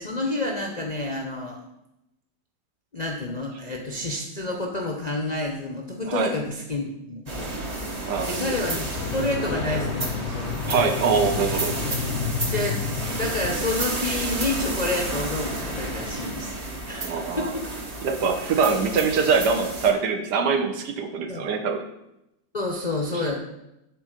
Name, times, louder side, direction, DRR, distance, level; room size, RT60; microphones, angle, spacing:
voice 1, 0.0-1.6 2.9-7.6 8.3-10.6 12.5-12.8 13.1-16.6 16.9-17.6 21.3-21.5 22.5-23.4, left 2 dB, 45° left, 0 dB, 0.5 m, -29 dB
Factory Sounds - Lens Making Production Line, 7.3-19.9, right 2 dB, 30° right, 0.8 m, -31 dB
voice 2, 8.1-8.5 8.8-8.9 10.7-11.8 17.0-17.6 18.0-21.8, right 5 dB, 75° right, 5 dB, 1.5 m, -23 dB
sound 1, 9.0-14.2, left 8 dB, 80° left, 1.3 m, -32 dB
7.8 x 3.8 x 6.4 m, 0.86 s
omnidirectional pair, 1.8 m